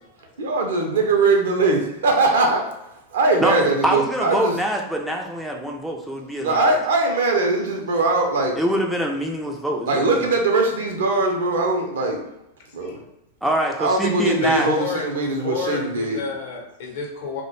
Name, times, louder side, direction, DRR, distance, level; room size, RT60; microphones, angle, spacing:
voice 1, 0.4-2.8 3.1-4.5 6.4-8.6 9.9-12.2 12.7-13.0 13.8-16.2, right 3 dB, 60° right, 2 dB, 0.5 m, -21 dB
voice 2, 3.4-6.6 8.6-10.1 13.4-14.7, right 1 dB, 5° right, 0 dB, 0.3 m, -24 dB
voice 3, 14.4-17.4, left 5 dB, 55° left, 0 dB, 0.7 m, -30 dB
2.3 x 2.1 x 3.0 m, 0.88 s
figure-of-eight pair, 90°, 0 cm